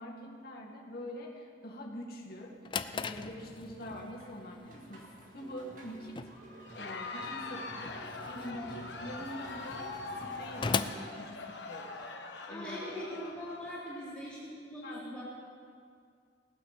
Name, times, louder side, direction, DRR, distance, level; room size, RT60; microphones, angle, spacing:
voice 1, 0.0-2.5 2.9-5.1 5.3-6.2 6.7-8.0 8.3-12.0 12.5-13.0 14.8-15.1, equal, 55° left, -2 dB, 2.1 m, -44 dB
Drawer open or close, 2.3-12.0, left 5 dB, 25° left, 0.4 m, -40 dB
sound 1, 3.1-10.7, right 1 dB, 45° right, 2.2 m, -52 dB
Crowd, 6.6-14.1, left 3 dB, 75° left, 1.2 m, -43 dB
voice 2, 12.5-15.2, equal, 5° left, -9 dB, 3.4 m, -41 dB
17.5 x 9.1 x 6.7 m, 2.2 s
head